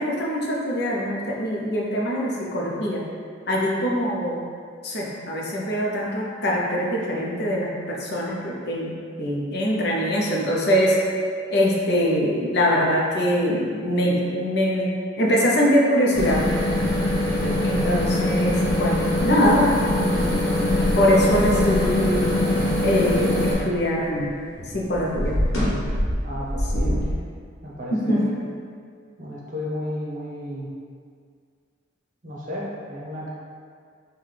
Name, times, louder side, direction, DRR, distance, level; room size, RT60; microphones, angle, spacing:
voice 1, 0.0-3.0 3.5-4.4 4.8-8.9 9.2-11.0 11.5-16.5 17.6-20.3 20.6-22.3 22.8-24.3 24.7-25.4 26.7-27.0 27.9-28.3, equal, 55° left, -3 dB, 0.6 m, -23 dB
sound 1, 16.1-23.5, left 1 dB, 20° left, 1.0 m, -23 dB
voice 2, 17.4-17.9 26.2-27.2 27.6-28.3 29.2-30.7 32.2-33.3, equal, 40° right, -5 dB, 0.7 m, -33 dB
sound 2, 20.2-24.3 24.6-27.1, equal, 85° left, 1.0 m, -27 dB
5.4 x 2.2 x 3.2 m, 2.1 s
head